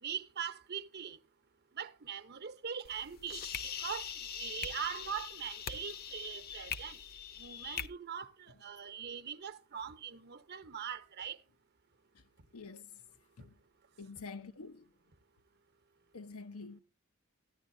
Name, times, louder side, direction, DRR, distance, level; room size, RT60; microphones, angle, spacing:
voice 1, 0.0-1.2 1.7-4.1 4.4-7.0 7.4-11.4, right 8 dB, 50° right, 0.9 m, -42 dB
sound 1, 2.8-7.9, left 7 dB, 45° left, 0.8 m, -42 dB
voice 2, 12.5-13.0 13.4-13.5 14.0-14.9 16.1-16.8, left 4 dB, 85° left, 0.8 m, -47 dB
14.5 x 10.5 x 2.7 m
head